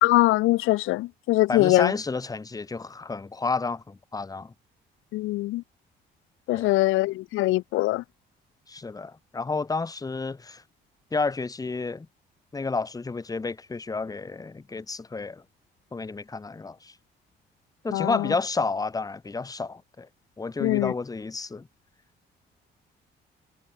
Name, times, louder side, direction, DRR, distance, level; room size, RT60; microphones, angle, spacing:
voice 1, 0.0-1.9 5.1-5.6 6.5-8.0 17.9-18.3 20.6-20.9, left 18 dB, 90° left, 0.6 m, -22 dB
voice 2, 1.5-4.5 6.5-6.7 8.7-10.6 11.1-12.1 12.5-15.4 15.9-16.9 17.8-20.1 20.4-21.7, left 4 dB, 20° left, 0.8 m, -31 dB
cardioid pair, 90°, 20 cm